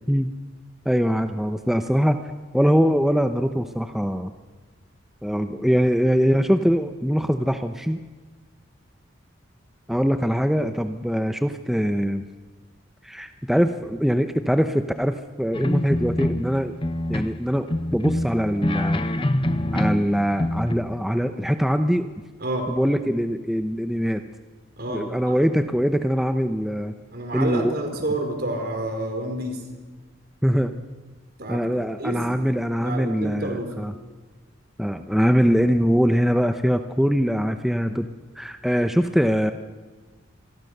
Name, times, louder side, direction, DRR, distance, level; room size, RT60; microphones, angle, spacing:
voice 1, 0.8-2.2 2.5-4.3 5.2-8.0 9.9-12.3 13.0-16.8 17.1-19.0 19.7-22.1 22.8-24.2 24.9-26.9 27.3-27.7 30.4-30.7 31.5-33.9 34.8-38.1 38.4-39.5, equal, ahead, 7 dB, 0.8 m, -22 dB
sound 1, 15.5-16.5 16.8-17.4 17.7-20.1 20.4-20.7, left 1 dB, 25° left, 1.0 m, -25 dB
voice 2, 24.8-25.4 27.1-29.6 31.4-32.2 32.8-33.7, right 1 dB, 50° right, 4 dB, 4.9 m, -29 dB
27.0 x 23.0 x 6.7 m, 1.3 s
head